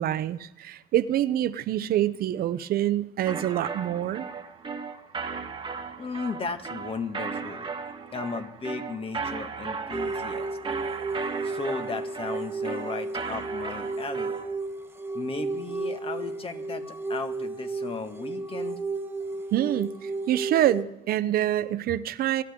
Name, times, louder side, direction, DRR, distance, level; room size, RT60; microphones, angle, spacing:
voice 1, 0.0-4.3 19.5-22.4, right 12 dB, 65° right, 15 dB, 0.6 m, -26 dB
sound 1, 3.3-14.6, right 5 dB, 30° right, 1.4 m, -36 dB
voice 2, 6.0-7.7 8.1-10.5 11.4-14.3 15.1-16.8 17.1-18.8, left 4 dB, 35° left, 7 dB, 1.8 m, -35 dB
sound 2, 9.9-20.8, right 3 dB, 15° right, 1.3 m, -33 dB
24.0 x 12.5 x 3.7 m, 0.90 s
cardioid pair, 110°, 17 cm